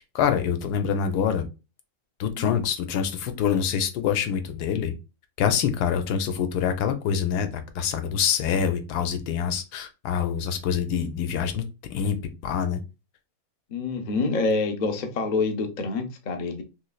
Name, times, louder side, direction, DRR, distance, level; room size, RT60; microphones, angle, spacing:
voice 1, 0.0-1.5 2.2-4.9 5.4-11.6 11.9-12.2 12.4-12.8, left 8 dB, 90° left, 1.2 m, -25 dB
voice 2, 13.7-16.6, left 3 dB, 60° left, 0.4 m, -27 dB
3.1 x 3.1 x 2.3 m
omnidirectional pair, 1.7 m